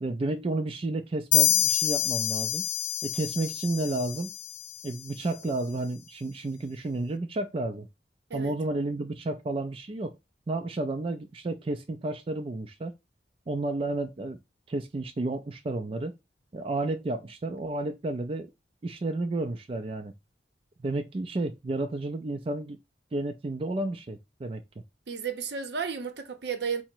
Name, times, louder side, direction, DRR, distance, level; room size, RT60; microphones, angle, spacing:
voice 1, 0.0-2.7 3.0-4.3 4.8-7.9 8.3-10.2 10.5-12.9 13.5-14.4 14.7-16.1 16.5-18.5 18.8-20.1 20.8-22.8 23.1-24.6, right 2 dB, 30° right, 0.4 m, -31 dB
sound 1, 1.3-4.9, left 12 dB, 60° left, 0.5 m, -27 dB
voice 2, 25.1-26.8, right 6 dB, 65° right, 0.7 m, -33 dB
4.8 x 2.1 x 4.3 m
head